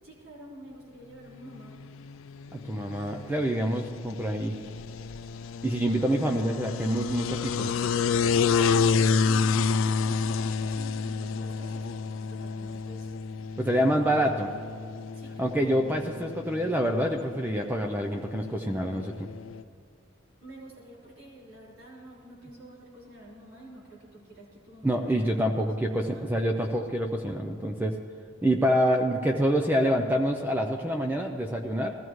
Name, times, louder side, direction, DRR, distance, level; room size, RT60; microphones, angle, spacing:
voice 1, 0.0-1.8 8.6-13.4 15.1-15.6 20.4-25.5 26.1-26.4, right 1 dB, 75° right, -8 dB, 4.5 m, -49 dB
sound 1, 1.6-19.6, left 5 dB, 75° left, 0.4 m, -30 dB
voice 2, 2.5-4.6 5.6-7.7 13.6-14.5 15.4-19.3 24.8-28.0 28.4-31.9, equal, 10° right, 3 dB, 0.5 m, -26 dB
20.0 x 15.0 x 3.1 m, 2.3 s
head